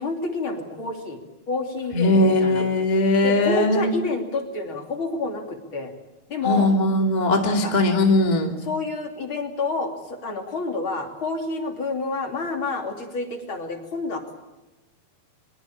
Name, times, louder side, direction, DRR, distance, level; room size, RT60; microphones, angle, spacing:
voice 1, 0.0-2.7 3.2-5.9 6.3-6.7 7.5-7.8 8.6-14.3, left 3 dB, 35° left, 4 dB, 3.3 m, -29 dB
voice 2, 1.9-3.9 6.4-8.5, left 2 dB, 15° left, 3 dB, 1.6 m, -20 dB
23.0 x 22.0 x 8.7 m, 1.0 s
omnidirectional pair, 4.4 m